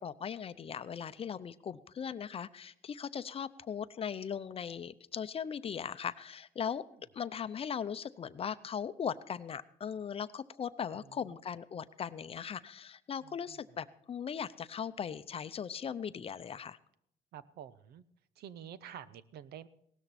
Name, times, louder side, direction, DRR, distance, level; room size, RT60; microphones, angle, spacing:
voice 1, 0.0-6.8 7.1-16.8, left 7 dB, 35° left, 13 dB, 0.6 m, -39 dB
voice 2, 10.9-11.4 13.2-13.8 17.3-18.0 18.4-19.7, right 9 dB, 80° right, 16 dB, 0.9 m, -50 dB
17.5 x 13.0 x 4.2 m, 0.72 s
cardioid pair, 140°, 16 cm